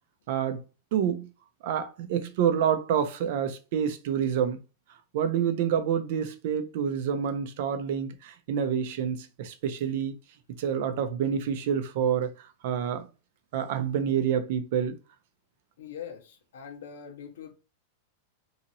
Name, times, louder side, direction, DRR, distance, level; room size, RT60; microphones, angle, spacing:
voice 1, 0.3-0.6 0.9-1.3 1.6-4.6 5.1-10.1 10.6-12.3 12.6-13.1 13.5-15.0, right 8 dB, 60° right, 0.5 m, -27 dB
voice 2, 15.8-17.5, left 8 dB, 85° left, 0.6 m, -42 dB
2.8 x 2.8 x 2.6 m
supercardioid pair, 150°, 0 cm